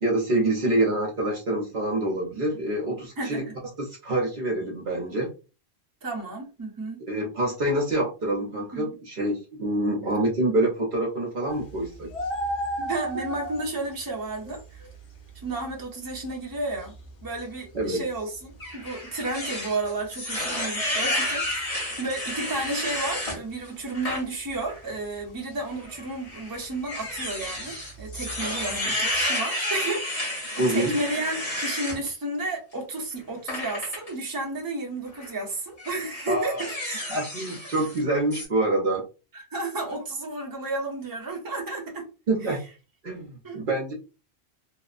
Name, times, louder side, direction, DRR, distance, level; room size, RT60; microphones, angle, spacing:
voice 1, 0.0-3.5 3.8-5.3 7.1-12.1 17.7-18.0 30.6-30.9 36.3-36.6 37.1-39.0 42.3-42.6 43.0-43.9, right 1 dB, 55° right, -1 dB, 0.8 m, -26 dB
voice 2, 3.2-3.5 6.0-7.0 8.7-8.9 12.8-14.9 15.3-16.9 17.2-21.7 22.0-30.2 30.5-37.1 39.3-42.1 42.4-42.5 43.4-43.6, right 2 dB, 25° right, -1 dB, 0.7 m, -32 dB
sound 1, 11.5-29.3, right 1 dB, 90° left, 1.0 m, -39 dB
sound 2, 18.6-23.4 23.9-24.2 24.7-24.8 25.8-32.0 33.5-34.1 35.1-35.3 35.8-38.0 38.3-38.5, left 1 dB, 35° left, 1.1 m, -31 dB
2.8 x 2.0 x 2.4 m, 0.32 s
omnidirectional pair, 1.1 m